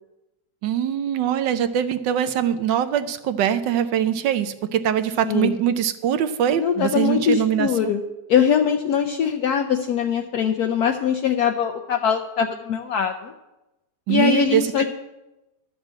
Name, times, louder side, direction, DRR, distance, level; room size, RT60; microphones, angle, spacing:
voice 1, 0.6-7.7 14.1-14.9, right 9 dB, 85° right, 10 dB, 1.4 m, -22 dB
voice 2, 6.6-8.0 8.3-13.3 14.1-14.9, left 7 dB, 70° left, 4 dB, 1.1 m, -22 dB
12.0 x 6.2 x 7.4 m, 1.0 s
omnidirectional pair, 1.9 m